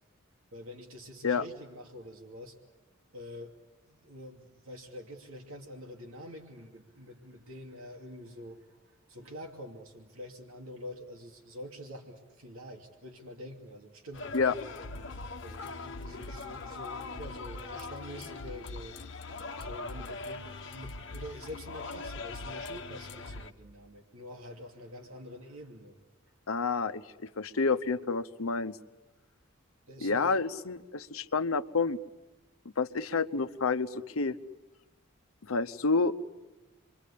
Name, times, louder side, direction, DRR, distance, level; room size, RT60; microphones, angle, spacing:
voice 1, 0.5-2.6 3.1-3.5 3.9-8.8 9.1-14.6 15.4-19.0 19.6-26.0 29.9-30.4, left 1 dB, 80° right, 3 dB, 2.7 m, -46 dB
sound 1, 14.1-23.5, left 3 dB, 55° left, 1.1 m, -41 dB
voice 2, 26.5-28.8 30.0-32.0 32.8-34.4 35.5-36.1, left 4 dB, 80° left, 11 dB, 0.9 m, -29 dB
28.5 x 23.5 x 8.6 m, 1.1 s
head